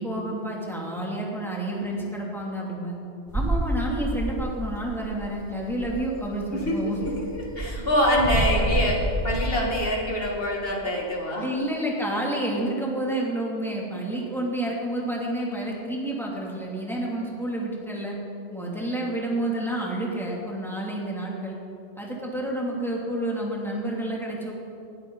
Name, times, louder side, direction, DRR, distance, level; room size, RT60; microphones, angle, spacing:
voice 1, 0.0-2.9 3.3-7.1 11.4-18.2 18.5-21.6 22.0-24.5, right 1 dB, ahead, -4 dB, 2.6 m, -29 dB
sound 1, 3.3-5.0 5.2-5.4 5.6-6.1 6.6-9.6, right 1 dB, 20° right, 0.8 m, -28 dB
voice 2, 7.2-11.5, equal, 55° left, -2 dB, 2.6 m, -25 dB
19.5 x 13.0 x 4.0 m, 2.8 s
omnidirectional pair, 1.2 m